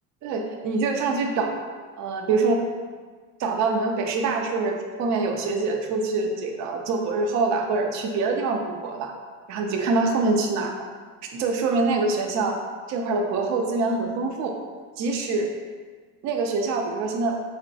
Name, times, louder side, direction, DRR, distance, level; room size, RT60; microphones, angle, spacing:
voice 1, 0.2-1.5 2.0-2.6 3.4-9.1 9.5-10.8 11.3-12.6 12.9-14.5 15.0-15.5 16.2-17.4, right 3 dB, 50° right, 3 dB, 0.5 m, -25 dB
3.5 x 2.1 x 2.7 m, 1.5 s
supercardioid pair, 95°, 36 cm